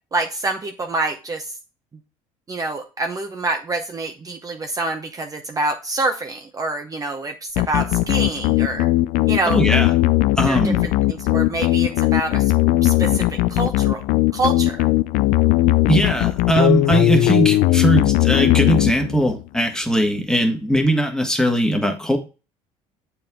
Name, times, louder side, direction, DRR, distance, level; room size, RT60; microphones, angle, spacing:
voice 1, 0.1-1.6 2.5-8.9 9.3-9.6 10.5-12.5 12.8-14.0 14.3-14.9, right 2 dB, 25° right, 4 dB, 0.8 m, -26 dB
sound 1, 7.6-19.4, left 17 dB, 70° left, 0.4 m, -18 dB
voice 2, 9.5-9.9 10.4-10.8 15.9-22.2, right 1 dB, 5° left, 5 dB, 1.4 m, -20 dB
7.4 x 4.7 x 3.6 m, 0.32 s
supercardioid pair, 100°, 14 cm